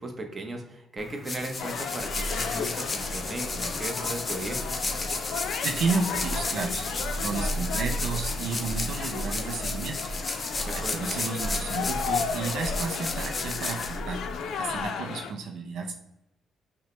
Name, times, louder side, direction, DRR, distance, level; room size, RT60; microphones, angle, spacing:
voice 1, 0.0-4.7 10.6-11.1, right 2 dB, 30° right, 3 dB, 0.8 m, -37 dB
sound 1, 1.0-14.6, left 3 dB, 25° left, 0.6 m, -34 dB
sound 2, 1.6-15.3, left 6 dB, 75° left, 0.4 m, -35 dB
sound 3, 1.9-14.9, right 1 dB, 65° right, 0.9 m, -37 dB
voice 2, 5.6-6.8 7.2-10.0 10.9-14.2 14.6-15.9, right 4 dB, 80° right, 3 dB, 0.4 m, -32 dB
5.5 x 2.1 x 3.1 m, 0.89 s
cardioid pair, 90°, 0 cm